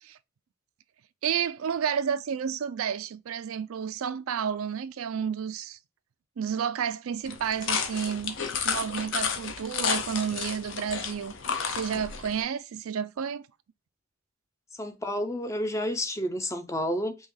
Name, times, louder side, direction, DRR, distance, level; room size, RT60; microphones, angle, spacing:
voice 1, 1.2-5.8 6.4-8.3 8.6-11.3 11.7-13.5, right 7 dB, 80° right, 0.4 m, -31 dB
sound 1, 7.3-12.4, left 6 dB, 60° left, 0.7 m, -32 dB
voice 2, 14.7-17.2, equal, 15° left, 0.5 m, -30 dB
5.3 x 2.3 x 3.2 m
head